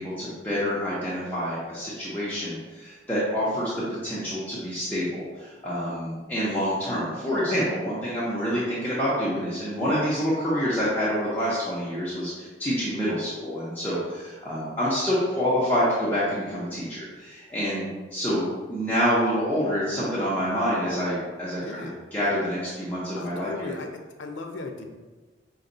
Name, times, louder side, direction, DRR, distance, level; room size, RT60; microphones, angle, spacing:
voice 1, 0.0-23.7, equal, 10° left, -10 dB, 0.8 m, -27 dB
voice 2, 21.6-22.0 23.1-24.8, left 3 dB, 80° left, 4 dB, 0.6 m, -37 dB
5.6 x 2.3 x 3.9 m, 1.3 s
head